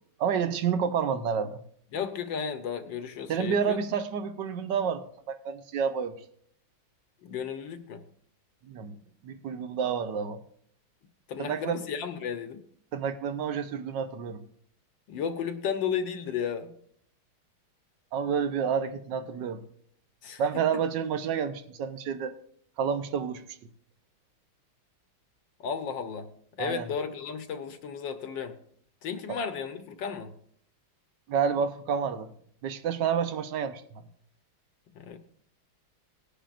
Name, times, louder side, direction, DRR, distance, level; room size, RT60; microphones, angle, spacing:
voice 1, 0.2-1.6 3.3-6.2 8.6-8.9 9.2-10.4 11.4-11.8 12.9-14.4 18.1-19.6 20.4-22.4 22.8-23.4 26.6-26.9 31.3-32.3 32.6-34.0, right 7 dB, 65° right, 10 dB, 1.3 m, -29 dB
voice 2, 1.9-3.8 7.2-8.0 11.3-12.6 15.1-16.7 20.2-20.4 25.6-26.3 26.6-28.5 29.0-30.3 34.9-35.2, left 7 dB, 65° left, 8 dB, 1.5 m, -33 dB
19.0 x 10.0 x 2.5 m, 0.63 s
omnidirectional pair, 2.3 m